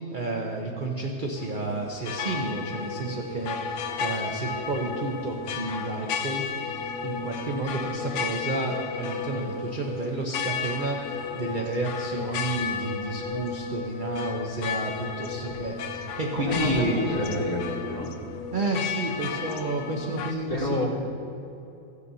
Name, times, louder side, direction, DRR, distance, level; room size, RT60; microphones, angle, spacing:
voice 1, 0.1-6.4 7.0-17.3 18.5-20.8, right 2 dB, 40° right, 0 dB, 0.7 m, -31 dB
sound 1, 1.4-20.3, left 6 dB, 85° left, 1.2 m, -33 dB
voice 2, 16.4-18.1 20.5-20.8, left 2 dB, 35° left, -6 dB, 2.5 m, -29 dB
16.5 x 9.4 x 2.7 m, 2.7 s
omnidirectional pair, 1.7 m